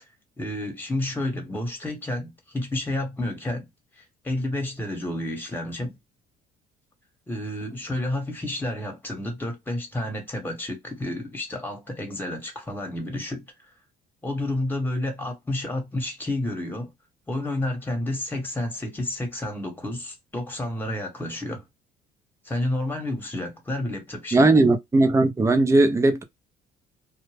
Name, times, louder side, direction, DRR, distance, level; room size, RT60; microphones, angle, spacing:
voice 1, 0.4-3.7 4.0-6.0 7.3-13.4 14.2-16.9 17.3-21.6 22.4-24.4, left 1 dB, 10° left, 1.1 m, -30 dB
voice 2, 24.3-26.2, right 2 dB, 15° right, 0.5 m, -18 dB
2.2 x 2.0 x 3.3 m
cardioid pair, 110°, 17 cm